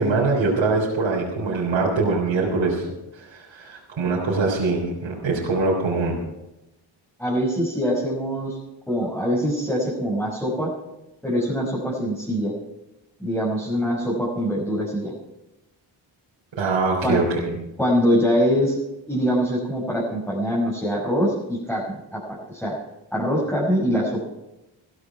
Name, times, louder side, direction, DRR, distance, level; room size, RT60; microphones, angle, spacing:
voice 1, 0.0-2.9 3.1-6.2 16.6-17.6, right 3 dB, 65° right, -4 dB, 3.8 m, -23 dB
voice 2, 7.2-8.6 8.9-10.7 11.2-12.6 13.2-15.1 17.0-17.2 17.8-18.8 19.1-22.2 22.5-22.8 23.1-24.2, equal, 5° left, -6 dB, 5.2 m, -23 dB
15.0 x 14.0 x 4.6 m, 0.97 s
cardioid pair, 70°, 48 cm